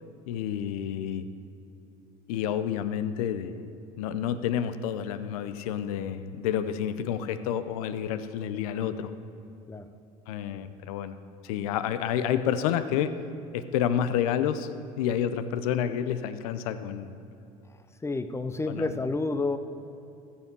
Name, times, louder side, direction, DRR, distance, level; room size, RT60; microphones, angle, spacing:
voice 1, 0.3-1.3 2.3-3.7 4.0-9.1 10.3-11.2 11.4-13.1 13.5-14.7 15.0-17.1 18.7-18.9, left 9 dB, 80° left, 12 dB, 0.7 m, -29 dB
voice 2, 18.0-19.6, left 3 dB, 15° left, 11 dB, 0.8 m, -30 dB
14.5 x 7.4 x 6.1 m, 2.9 s
hypercardioid pair, 85°, 18 cm